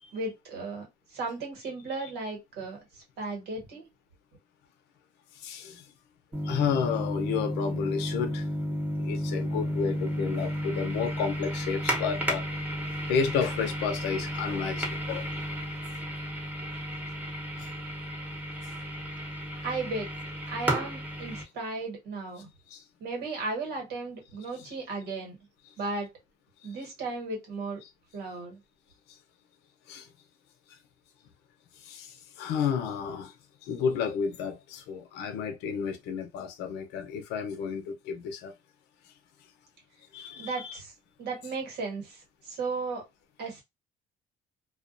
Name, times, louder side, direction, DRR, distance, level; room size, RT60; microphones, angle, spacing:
voice 1, 0.1-3.9 19.6-20.1 20.5-22.5 23.0-25.4 25.8-26.1 26.6-27.8 28.1-28.6 40.3-40.9 41.2-43.0 43.4-43.6, right 3 dB, 80° right, 1.3 m, -35 dB
voice 2, 5.3-5.9 6.4-8.5 9.0-12.5 13.1-15.3 16.7-16.8 17.6-17.7 22.7-22.8 29.9-30.1 31.8-33.3 33.6-38.5 40.1-40.8, left 6 dB, 90° left, 0.7 m, -31 dB
sound 1, 6.3-21.4, equal, 10° right, 0.9 m, -33 dB
2.4 x 2.2 x 2.5 m
cardioid pair, 110°, 17 cm